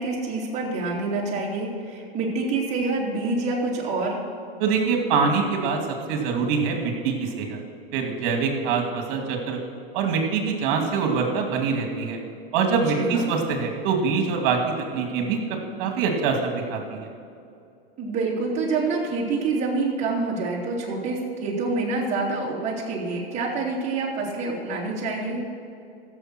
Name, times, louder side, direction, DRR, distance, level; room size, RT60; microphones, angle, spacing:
voice 1, 0.0-4.2 12.9-13.3 18.0-25.4, right 3 dB, 20° right, -5 dB, 2.8 m, -27 dB
voice 2, 4.6-5.8 6.1-7.6 7.9-9.6 9.9-12.2 12.5-14.6 14.9-17.1, right 5 dB, 45° right, 3 dB, 2.5 m, -24 dB
15.0 x 7.3 x 6.1 m, 2.5 s
hypercardioid pair, 140°, 31 cm